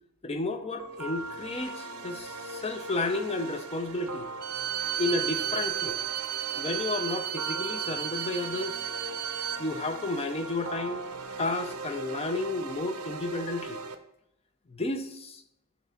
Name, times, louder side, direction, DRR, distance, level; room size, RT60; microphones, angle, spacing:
voice 1, 0.2-4.3 5.0-6.0 6.5-8.8 9.6-11.0 11.4-13.8 14.7-15.4, left 2 dB, 25° left, 7 dB, 0.6 m, -32 dB
sound 1, 0.8-13.9, right 3 dB, 80° right, 0.7 m, -39 dB
Bowed string instrument, 4.4-9.6, right 11 dB, 45° right, 0.3 m, -33 dB
9.5 x 3.3 x 3.8 m, 0.82 s
head